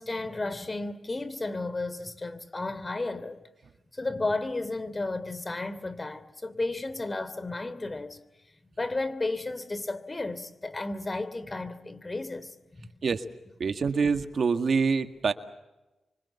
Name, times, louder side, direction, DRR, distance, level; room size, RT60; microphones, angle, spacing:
voice 1, 0.0-3.4 3.9-8.2 8.8-12.9, left 2 dB, 30° left, 3.1 m, -33 dB
voice 2, 13.6-15.3, right 5 dB, 60° right, 1.9 m, -25 dB
29.5 x 25.0 x 7.1 m
supercardioid pair, 45°, 0 cm